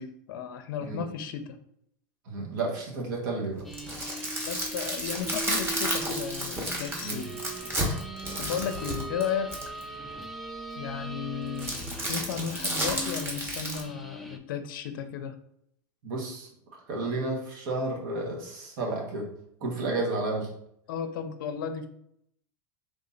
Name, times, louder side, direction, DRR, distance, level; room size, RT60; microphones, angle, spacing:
voice 1, 0.0-1.6 4.5-7.3 8.4-9.5 10.8-11.7 12.1-15.4 20.9-21.9, left 7 dB, 75° left, 9 dB, 0.5 m, -34 dB
voice 2, 2.2-3.6 7.0-7.3 16.0-16.5 16.9-19.3 19.6-20.5, right 2 dB, 65° right, -1 dB, 1.4 m, -31 dB
sound 1, 3.6-14.4, equal, ahead, 0.5 m, -41 dB
sound 2, 3.6-9.8 11.6-13.8, right 1 dB, 20° right, 1.2 m, -32 dB
Wind instrument woodwind instrument, 7.2-11.7, right 3 dB, 40° right, 1.5 m, -43 dB
3.6 x 2.8 x 3.8 m, 0.72 s
hypercardioid pair, 110°, 11 cm